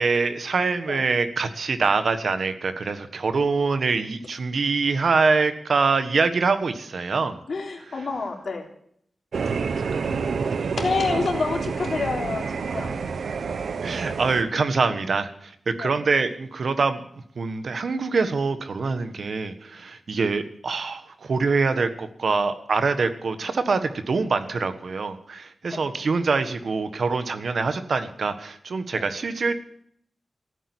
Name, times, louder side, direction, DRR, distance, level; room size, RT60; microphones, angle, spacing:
voice 1, 0.0-7.4 13.8-17.0 17.4-29.5, right 4 dB, 65° right, 10 dB, 1.4 m, -24 dB
voice 2, 7.5-8.7 10.5-13.0 15.8-16.0 25.7-25.9 28.9-29.1, left 4 dB, 65° left, 2 dB, 3.4 m, -28 dB
sound 1, 9.3-14.4, right 5 dB, 90° right, 0.9 m, -28 dB
15.0 x 9.0 x 9.8 m, 0.67 s
wide cardioid pair, 110°, 0 cm